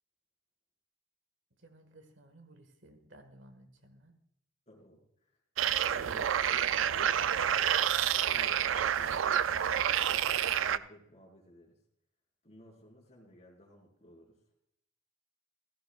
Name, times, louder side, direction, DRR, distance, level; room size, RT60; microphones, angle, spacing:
voice 1, 1.6-4.1, right 1 dB, 70° right, 7 dB, 1.6 m, -57 dB
voice 2, 4.7-5.4 6.0-7.9 8.2-10.3 10.7-11.8 12.4-14.4, equal, 35° left, -2 dB, 4.4 m, -56 dB
sound 1, 5.6-10.8, right 9 dB, 85° right, 0.4 m, -28 dB
15.5 x 14.5 x 2.4 m, 0.74 s
head